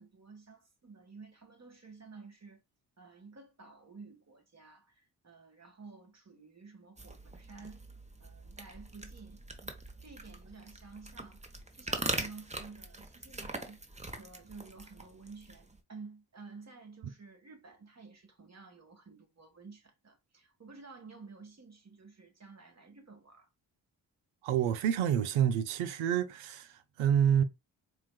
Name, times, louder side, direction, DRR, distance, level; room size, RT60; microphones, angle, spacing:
voice 1, 0.0-2.6 3.0-7.9 8.2-23.5, right 4 dB, 35° right, 1.3 m, -52 dB
sound 1, 7.0-15.8, right 2 dB, 15° right, 0.8 m, -42 dB
voice 2, 24.4-27.4, right 9 dB, 85° right, 0.6 m, -28 dB
4.4 x 2.3 x 2.2 m
supercardioid pair, 40°, 48 cm